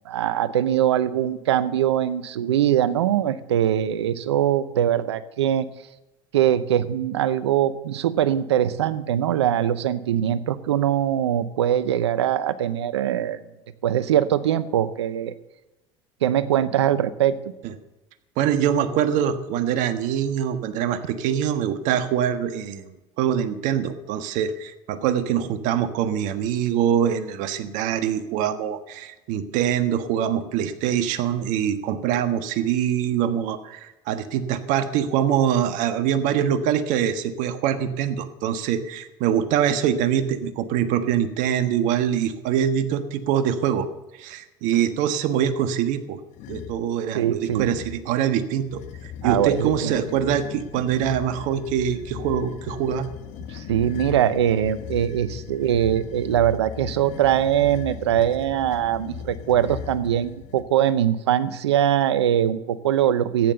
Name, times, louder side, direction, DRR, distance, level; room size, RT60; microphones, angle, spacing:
voice 1, 0.0-5.7 6.3-13.4 13.8-15.3 16.2-17.4 47.1-47.7 49.2-49.9 53.5-63.5, right 10 dB, 90° right, 15 dB, 0.8 m, -22 dB
voice 2, 18.4-43.9 44.2-46.2 46.5-53.1, right 9 dB, 65° right, 9 dB, 1.5 m, -24 dB
sound 1, 46.3-46.8 47.4-48.1 48.7-60.7, left 10 dB, 60° left, 1.1 m, -38 dB
13.5 x 9.6 x 6.9 m, 0.99 s
hypercardioid pair, 80°, 14 cm